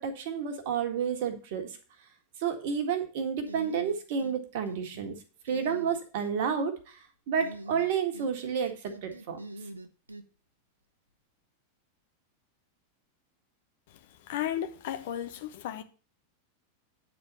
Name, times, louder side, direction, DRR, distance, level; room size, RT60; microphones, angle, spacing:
voice 1, 0.0-1.7 2.4-5.2 5.4-7.0 7.3-9.4, right 7 dB, 50° right, 1.7 m, -30 dB
sound 1, 3.5-4.4 4.7-5.1 5.5-6.3 7.4-8.3 8.6-10.2, right 2 dB, 80° right, 0.8 m, -44 dB
voice 2, 14.3-15.8, left 11 dB, 55° left, 1.0 m, -34 dB
9.4 x 4.4 x 6.7 m
figure-of-eight pair, 90°, 0 cm